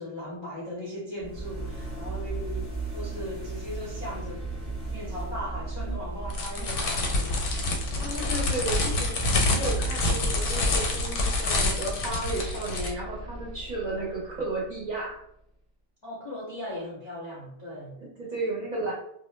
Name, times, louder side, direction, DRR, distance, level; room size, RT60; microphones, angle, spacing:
voice 1, 0.0-4.4 4.9-8.4 9.3-9.8 13.8-14.2 16.0-18.0, left 1 dB, 35° left, -6 dB, 0.4 m, -39 dB
sound 1, 1.2-15.1, right 3 dB, 5° right, 0.6 m, -36 dB
sound 2, 6.3-12.9, left 2 dB, 85° left, 0.9 m, -27 dB
voice 2, 8.0-9.2 9.5-15.2 18.0-18.9, right 2 dB, 45° right, -4 dB, 0.6 m, -33 dB
2.0 x 2.0 x 3.1 m, 0.73 s
omnidirectional pair, 1.2 m